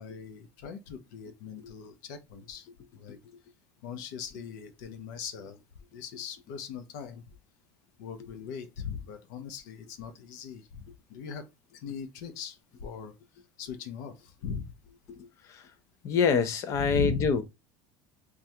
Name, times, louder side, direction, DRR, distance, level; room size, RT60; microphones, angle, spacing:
voice 1, 0.0-2.7 2.9-3.2 3.8-5.6 5.9-7.2 8.0-10.8 11.1-11.5 11.7-13.1 13.6-14.7 16.8-17.3, left 6 dB, 85° left, 0.6 m, -39 dB
voice 2, 15.2-15.7 16.0-17.4, left 5 dB, 30° left, 0.4 m, -26 dB
3.2 x 2.3 x 2.7 m
cardioid pair, 175°, 9 cm